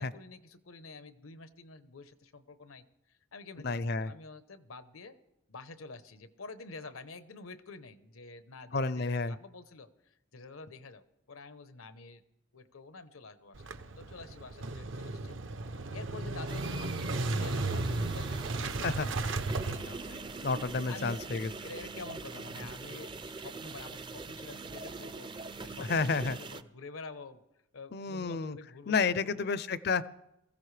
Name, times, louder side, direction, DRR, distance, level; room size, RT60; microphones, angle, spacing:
voice 1, 0.0-5.2 5.5-12.2 12.5-13.7 14.0-15.4 15.6-20.4 20.9-27.4 27.7-29.5, left 3 dB, 85° left, 12 dB, 0.9 m, -49 dB
voice 2, 3.6-4.1 8.7-9.3 18.8-19.1 20.4-21.5 25.8-26.4 27.9-28.6 28.9-30.0, left 4 dB, 50° left, 15 dB, 0.5 m, -30 dB
Motorcycle / Engine starting, 13.6-20.8, right 2 dB, 65° right, 0.7 m, -35 dB
sound 1, 16.5-26.6, right 3 dB, 20° right, 0.4 m, -43 dB
21.0 x 15.0 x 3.3 m, 0.88 s
head